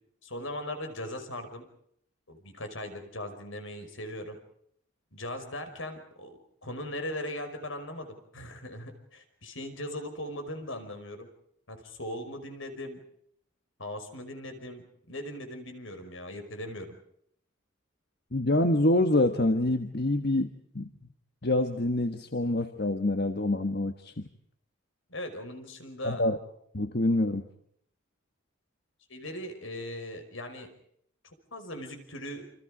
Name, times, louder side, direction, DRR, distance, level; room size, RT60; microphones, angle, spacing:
voice 1, 0.2-1.6 2.3-4.4 5.1-11.3 11.7-13.0 13.8-17.0 25.1-26.2 29.1-30.7 31.5-32.4, left 1 dB, 75° left, 7 dB, 5.4 m, -39 dB
voice 2, 18.3-20.9 21.4-24.2 26.0-26.4 26.7-27.4, left 1 dB, 50° left, 7 dB, 1.4 m, -26 dB
28.5 x 27.0 x 5.0 m, 0.69 s
head